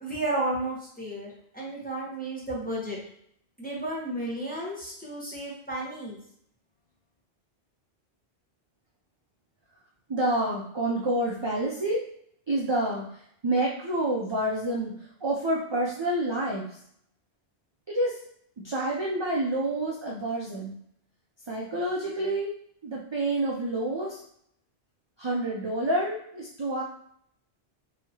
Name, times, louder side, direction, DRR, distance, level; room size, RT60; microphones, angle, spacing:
voice 1, 0.0-3.0 3.6-6.2, right 1 dB, 10° left, -6 dB, 1.0 m, -33 dB
voice 2, 10.1-12.0 12.5-16.8 17.9-18.2 18.6-20.7 21.5-22.5 22.8-24.2 25.2-26.8, right 1 dB, 40° right, -3 dB, 0.4 m, -28 dB
4.1 x 2.8 x 2.9 m, 0.68 s
omnidirectional pair, 1.2 m